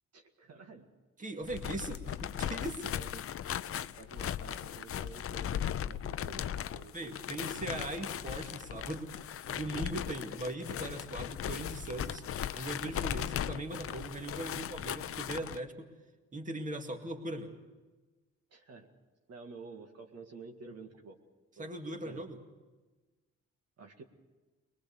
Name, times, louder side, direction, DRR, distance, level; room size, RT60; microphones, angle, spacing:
voice 1, 0.1-0.9 2.9-3.2 3.8-7.2 18.5-18.9 19.3-21.2 21.6-22.3 23.8-24.0, right 4 dB, 55° right, 3 dB, 2.1 m, -51 dB
voice 2, 1.2-3.0 3.7-3.8 6.9-9.2 9.5-12.2 12.5-15.9 16.3-17.5 21.6-22.4, right 2 dB, 25° right, 4 dB, 2.2 m, -39 dB
sound 1, 1.4-15.6, left 10 dB, 50° left, 0.6 m, -38 dB
22.0 x 21.5 x 7.0 m, 1.2 s
cardioid pair, 90°, 30 cm